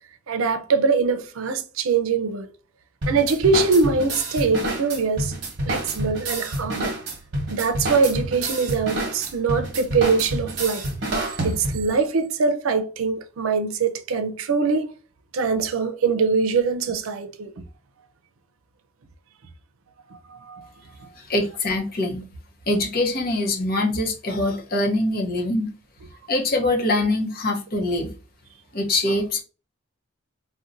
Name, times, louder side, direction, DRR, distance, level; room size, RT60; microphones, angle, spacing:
voice 1, 0.3-2.5 3.1-5.3 5.7-6.9 7.5-10.8 11.4-14.9 15.3-17.5 20.1-20.7 21.0-21.1, right 4 dB, 85° right, 0.5 m, -23 dB
sound 1, 3.0-11.9, right 1 dB, 55° right, 1.0 m, -28 dB
voice 2, 21.2-22.2 22.7-25.7 26.3-28.1 28.7-29.4, left 2 dB, 45° left, 0.7 m, -23 dB
4.1 x 2.2 x 2.5 m
head